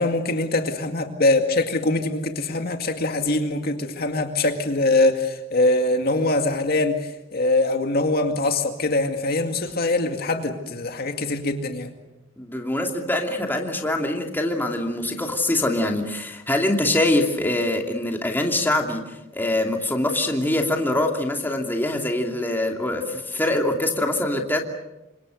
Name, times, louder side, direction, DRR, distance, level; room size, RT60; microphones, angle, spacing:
voice 1, 0.0-12.0, left 2 dB, 50° left, 5 dB, 2.2 m, -23 dB
voice 2, 12.4-24.6, left 1 dB, 10° left, 2 dB, 2.8 m, -24 dB
29.0 x 26.0 x 6.5 m, 0.99 s
head